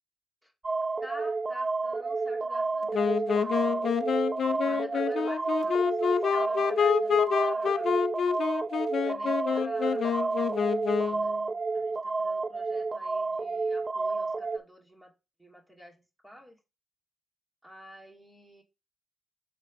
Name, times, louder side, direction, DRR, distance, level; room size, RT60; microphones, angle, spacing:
sound 1, 0.6-14.6, right 3 dB, 40° right, 0.7 m, -30 dB
voice 1, 1.0-8.0 9.0-11.4 11.7-15.1 15.4-16.6 17.6-18.6, left 1 dB, 10° right, 2.3 m, -49 dB
Wind instrument woodwind instrument, 2.9-11.3, left 7 dB, 65° left, 0.5 m, -28 dB
7.2 x 3.5 x 5.1 m
supercardioid pair, 45°, 0 cm